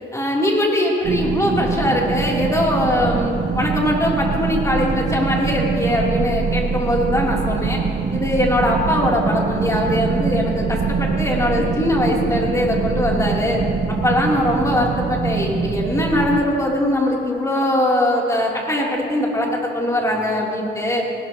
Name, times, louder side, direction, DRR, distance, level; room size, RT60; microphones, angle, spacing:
voice 1, 0.1-7.8 8.1-13.6 14.0-21.0, left 1 dB, 15° left, -3 dB, 3.7 m, -21 dB
sound 1, 1.0-16.4, right 5 dB, 45° right, 1.1 m, -23 dB
19.5 x 18.5 x 3.1 m, 2.5 s
cardioid pair, 90°, 20 cm